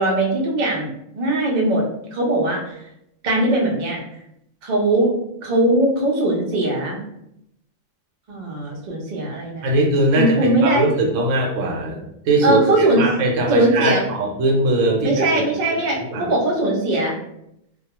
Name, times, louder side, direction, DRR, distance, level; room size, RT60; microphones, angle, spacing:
voice 1, 0.0-1.8 2.1-2.8 3.2-4.0 4.6-5.1 5.4-7.0 8.3-9.7 10.1-10.8 12.4-13.0 13.5-14.0 15.0-17.1, right 1 dB, 50° right, -1 dB, 0.6 m, -20 dB
voice 2, 9.6-15.4 15.7-16.3, right 2 dB, 80° right, 0 dB, 1.0 m, -21 dB
2.3 x 2.2 x 2.8 m, 0.78 s
omnidirectional pair, 1.4 m